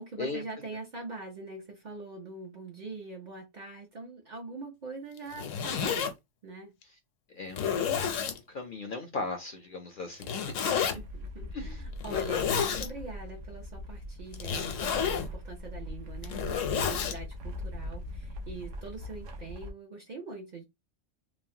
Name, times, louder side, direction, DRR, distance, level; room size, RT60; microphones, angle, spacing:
voice 1, 0.0-6.1 6.4-6.7 10.9-20.6, right 3 dB, 50° right, 0.6 m, -43 dB
Zipper (clothing), 5.2-6.1 6.8-6.9 7.5-8.4 10.2-11.0 12.0-12.9 14.3-15.3 16.1-17.2, left 7 dB, 85° left, 1.0 m, -30 dB
voice 2, 7.3-11.0 11.5-11.8, left 3 dB, 60° left, 0.5 m, -38 dB
sound 1, 10.9-19.7, left 1 dB, 80° right, 1.0 m, -41 dB
3.1 x 2.0 x 2.7 m
omnidirectional pair, 1.3 m